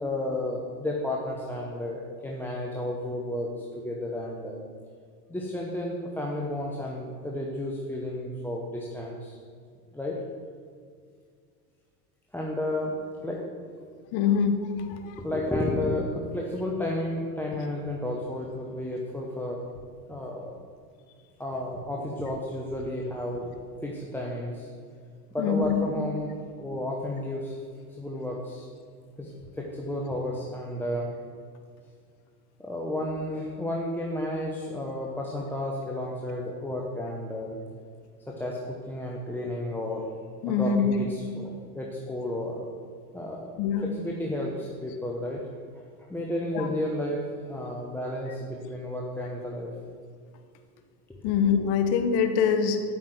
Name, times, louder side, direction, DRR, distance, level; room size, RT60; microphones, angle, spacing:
voice 1, 0.0-4.6 5.3-9.4 9.9-10.2 12.3-13.0 13.2-13.4 13.8-13.9 14.9-19.6 20.1-20.5 21.4-23.5 23.8-24.7 25.3-27.5 28.0-28.7 29.2-29.3 29.6-31.1 32.6-37.6 38.3-40.0 40.5-42.7 43.1-43.5 43.8-45.4 46.1-49.7 51.2-51.3, left 1 dB, 5° left, -2 dB, 0.9 m, -32 dB
voice 2, 14.1-15.1 25.4-25.9 40.4-41.0 43.6-43.9 46.5-46.7 51.2-52.8, left 6 dB, 50° left, 7 dB, 1.2 m, -24 dB
8.8 x 5.9 x 7.9 m, 2.1 s
supercardioid pair, 120°, 49 cm